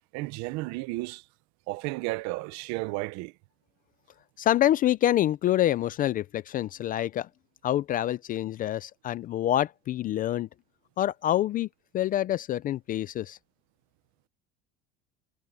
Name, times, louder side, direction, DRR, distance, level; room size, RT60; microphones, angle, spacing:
voice 1, 0.1-1.2 1.7-3.3, right 22 dB, 60° right, 0.9 m, -33 dB
voice 2, 4.4-7.3 7.6-10.5 11.0-11.7 11.9-13.4, left 12 dB, 30° left, 0.3 m, -26 dB
cardioid pair, 155°, 31 cm